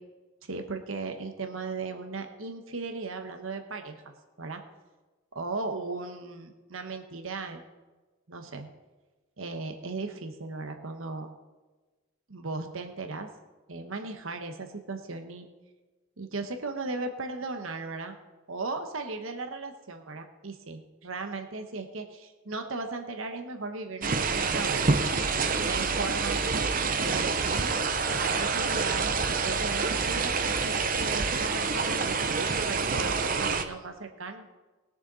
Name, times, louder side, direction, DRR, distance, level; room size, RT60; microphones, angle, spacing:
voice 1, 0.5-4.0 4.4-4.6 5.3-7.6 8.3-8.7 9.4-11.3 12.3-13.3 13.7-15.5 16.2-18.1 18.5-24.9 25.6-27.8 28.2-34.6, right 3 dB, 75° right, 6 dB, 1.2 m, -37 dB
sound 1, 24.0-33.6, right 4 dB, 40° right, 0.7 m, -27 dB
20.5 x 6.8 x 4.1 m, 1.2 s
head